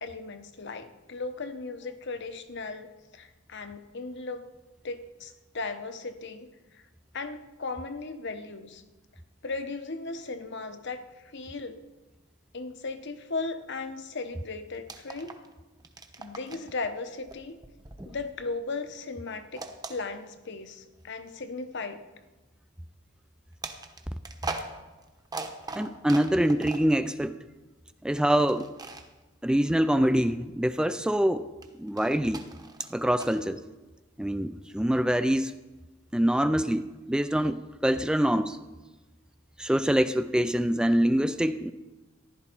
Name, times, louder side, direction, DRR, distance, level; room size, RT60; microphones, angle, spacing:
voice 1, 0.0-4.4 4.8-6.8 7.1-8.8 9.4-11.8 12.5-15.3 16.2-17.6 18.0-22.0, left 3 dB, 60° left, 8 dB, 1.0 m, -37 dB
sound 1, 14.9-15.5 15.8-16.7 17.3-18.7 19.5-20.6 21.3-21.4 23.6-27.0 28.5-29.1 31.6-33.4, right 3 dB, 20° right, 1.0 m, -40 dB
voice 2, 25.8-27.3 28.0-28.7 29.4-31.4 31.8-32.4 32.9-33.6 34.2-35.6 36.1-38.6 39.6-41.7, equal, 5° right, 11 dB, 0.3 m, -25 dB
15.0 x 11.5 x 4.6 m, 1.2 s
head